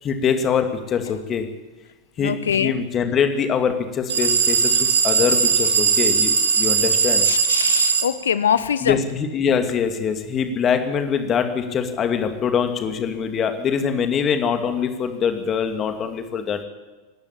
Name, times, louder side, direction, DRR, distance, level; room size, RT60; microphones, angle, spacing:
voice 1, 0.0-1.4 2.2-7.2 8.8-16.6, left 7 dB, 25° left, 6 dB, 2.6 m, -23 dB
voice 2, 2.2-2.8 7.2-9.0, left 8 dB, 65° left, 15 dB, 0.9 m, -23 dB
sound 1, 4.1-8.1, right 6 dB, 65° right, 2.1 m, -19 dB
27.5 x 12.0 x 9.0 m, 1.2 s
figure-of-eight pair, 90°, 0 cm